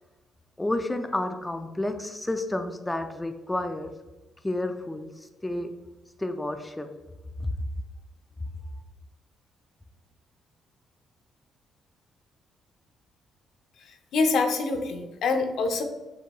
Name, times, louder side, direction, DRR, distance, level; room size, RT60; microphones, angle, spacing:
voice 1, 0.6-4.0 4.4-5.7 6.2-7.0 7.4-7.5, left 1 dB, 10° left, 7 dB, 0.4 m, -31 dB
voice 2, 13.8-15.8, left 4 dB, 75° left, 5 dB, 0.6 m, -26 dB
7.0 x 2.9 x 2.2 m, 1.1 s
cardioid pair, 90°, 0 cm